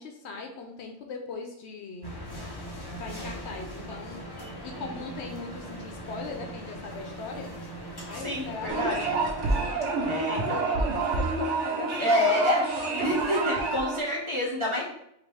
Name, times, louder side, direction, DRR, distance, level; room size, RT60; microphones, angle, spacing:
voice 1, 0.0-2.2 2.7-4.3 4.6-7.5 8.0-8.9 9.4-12.4 12.8-13.4, left 4 dB, 70° left, 3 dB, 0.9 m, -40 dB
sound 1, 2.0-9.7, right 1 dB, 25° left, 0.6 m, -40 dB
voice 2, 4.4-4.8 8.1-9.2 10.0-10.6 12.0-12.6 12.9-14.8, left 1 dB, 25° right, -4 dB, 1.0 m, -28 dB
sound 2, 8.7-14.0, right 3 dB, 75° right, 1.1 m, -28 dB
5.2 x 2.9 x 3.2 m, 0.77 s
omnidirectional pair, 1.2 m